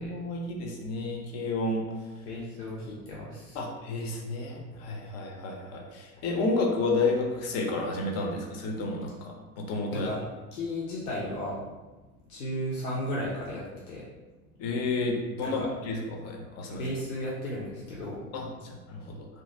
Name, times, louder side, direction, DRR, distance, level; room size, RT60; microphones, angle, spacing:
voice 1, 0.0-1.8 3.5-10.1 14.6-16.8 18.3-19.3, left 2 dB, 35° left, 1 dB, 0.6 m, -31 dB
voice 2, 2.2-3.6 9.9-10.2 10.5-11.6 12.3-14.0 15.4-15.7 16.7-18.3, left 1 dB, 70° left, -5 dB, 0.7 m, -34 dB
2.7 x 2.5 x 2.6 m, 1.2 s
figure-of-eight pair, 70°, 45 cm